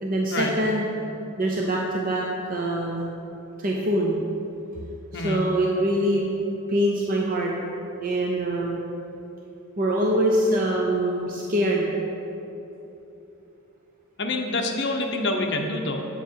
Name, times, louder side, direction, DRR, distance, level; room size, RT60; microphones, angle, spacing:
voice 1, 0.0-0.9 1.4-3.1 3.6-4.2 5.1-6.3 6.7-7.5 8.0-8.8 9.8-11.9, right 1 dB, 40° right, -1 dB, 0.6 m, -24 dB
voice 2, 14.2-16.1, left 2 dB, 50° left, 2 dB, 0.9 m, -26 dB
8.5 x 7.3 x 4.6 m, 2.9 s
head